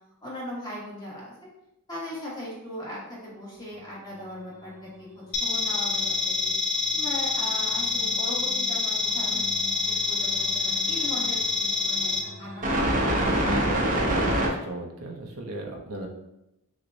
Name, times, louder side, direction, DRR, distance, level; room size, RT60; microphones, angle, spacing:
voice 1, 0.2-1.3 1.9-6.5 6.9-9.4 9.8-12.7 13.4-13.5, left 1 dB, 20° left, -6 dB, 1.1 m, -39 dB
sound 1, 5.3-12.2, left 4 dB, 50° left, 0.5 m, -26 dB
sound 2, 6.5-6.6 7.9-8.8 9.0-14.5, right 1 dB, 35° right, 0.6 m, -28 dB
voice 2, 14.0-16.1, right 2 dB, 70° right, 1 dB, 0.6 m, -38 dB
6.0 x 2.1 x 2.6 m, 0.86 s
head